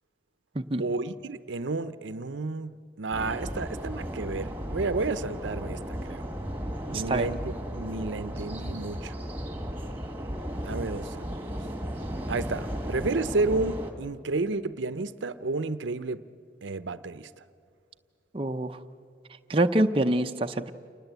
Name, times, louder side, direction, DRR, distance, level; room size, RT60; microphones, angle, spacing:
voice 1, 0.8-6.3 6.9-9.1 10.6-11.5 12.3-16.2 16.6-17.3, right 3 dB, 80° right, 14 dB, 0.7 m, -31 dB
sound 1, 3.1-13.9, equal, 10° right, 1.9 m, -35 dB
voice 2, 6.9-7.3 18.3-18.8 19.5-20.7, right 1 dB, 30° right, 5 dB, 0.6 m, -25 dB
28.5 x 19.5 x 8.1 m, 2.2 s
head